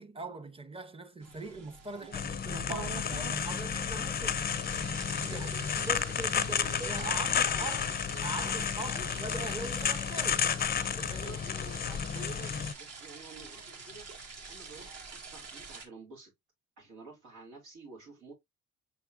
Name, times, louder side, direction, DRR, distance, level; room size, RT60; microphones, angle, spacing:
voice 1, 0.0-4.4 4.7-7.8 8.2-10.5 10.8-11.4, right 3 dB, 20° right, 0.7 m, -42 dB
sound 1, 1.2-15.8, right 4 dB, 55° right, 1.5 m, -47 dB
sound 2, 2.1-12.7, left 7 dB, 30° left, 0.5 m, -32 dB
voice 2, 6.5-8.7 8.9-9.2 11.2-14.1 14.5-16.3 16.8-18.3, right 2 dB, 90° right, 2.6 m, -50 dB
5.5 x 3.6 x 2.4 m
cardioid pair, 90°, 30 cm